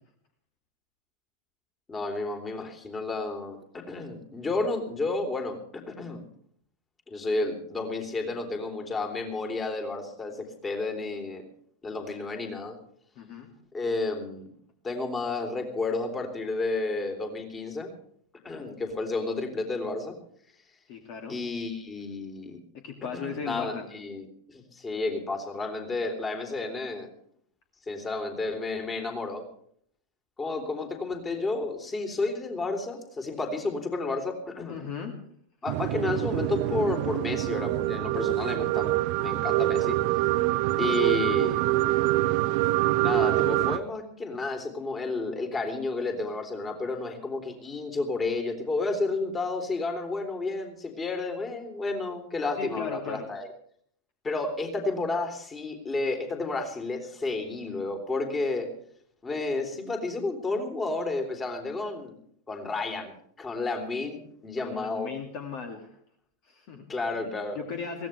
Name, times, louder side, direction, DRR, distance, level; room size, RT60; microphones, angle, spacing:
voice 1, 1.9-6.2 7.1-11.4 11.8-12.8 13.7-14.5 14.8-17.9 18.4-20.1 21.3-22.6 23.2-27.1 27.9-29.4 30.4-34.8 35.6-40.0 40.8-41.6 43.0-53.5 54.2-58.7 59.2-62.1 62.5-63.1 63.4-65.1 66.9-67.6, left 3 dB, 15° left, 5 dB, 3.5 m, -31 dB
voice 2, 13.2-13.5 20.9-21.4 22.7-23.9 34.7-35.1 52.6-53.3 64.6-66.0 66.4-66.8 67.1-68.1, left 5 dB, 45° left, 4 dB, 2.4 m, -37 dB
sound 1, 35.7-43.8, right 17 dB, 45° right, 0.8 m, -25 dB
22.5 x 17.0 x 3.4 m, 0.63 s
figure-of-eight pair, 90°, 0 cm